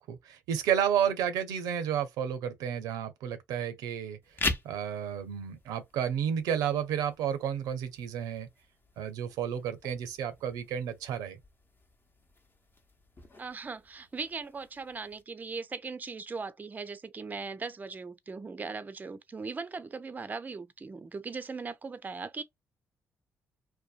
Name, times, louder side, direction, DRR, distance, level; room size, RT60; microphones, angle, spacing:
voice 1, 0.0-4.2 4.6-8.5 9.0-11.4, right 9 dB, 85° right, 0.5 m, -31 dB
sound 1, 4.2-15.2, left 3 dB, 35° left, 0.7 m, -42 dB
voice 2, 13.4-22.4, right 4 dB, 30° right, 0.4 m, -39 dB
2.7 x 2.1 x 2.4 m
supercardioid pair, 60°, 6 cm